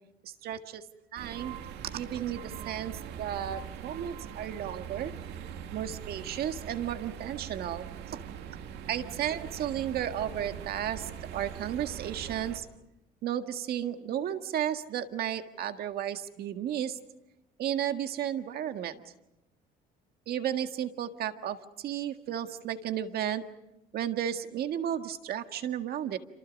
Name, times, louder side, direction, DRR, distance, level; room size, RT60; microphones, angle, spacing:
voice 1, 0.2-0.8 1.1-1.5 1.9-5.1 5.7-8.2 8.9-12.7 13.2-17.0 17.6-19.0 20.3-23.4 23.9-26.2, right 10 dB, 65° right, 7 dB, 1.8 m, -33 dB
sound 1, 1.2-12.6, right 8 dB, 85° right, 2.4 m, -42 dB
28.5 x 26.5 x 5.4 m, 0.89 s
cardioid pair, 110°, 17 cm